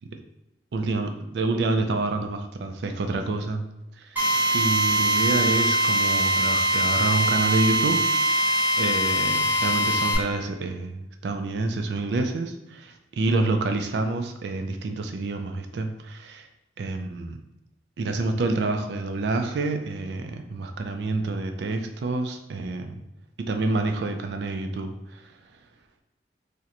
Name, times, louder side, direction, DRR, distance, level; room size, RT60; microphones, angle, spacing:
voice 1, 0.7-3.7 4.0-8.0 8.8-16.5 16.8-17.4 18.0-23.0 23.4-25.2, right 3 dB, 70° right, 5 dB, 0.3 m, -28 dB
Drill, 4.2-10.2, equal, 10° right, 0.7 m, -22 dB
3.7 x 2.1 x 2.9 m, 0.97 s
head